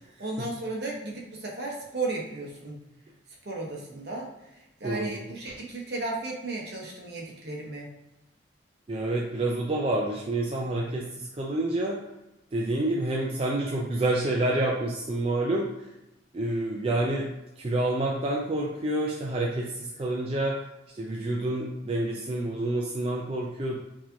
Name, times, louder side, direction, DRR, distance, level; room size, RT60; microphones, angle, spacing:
voice 1, 0.2-2.8 3.4-4.3 4.8-7.9, right 2 dB, 60° right, -2 dB, 1.0 m, -34 dB
voice 2, 4.8-5.2 8.9-12.0 12.5-15.7 16.3-17.3 17.6-20.5 20.9-23.7, right 1 dB, 30° right, -3 dB, 0.4 m, -28 dB
4.6 x 2.8 x 2.7 m, 0.93 s
head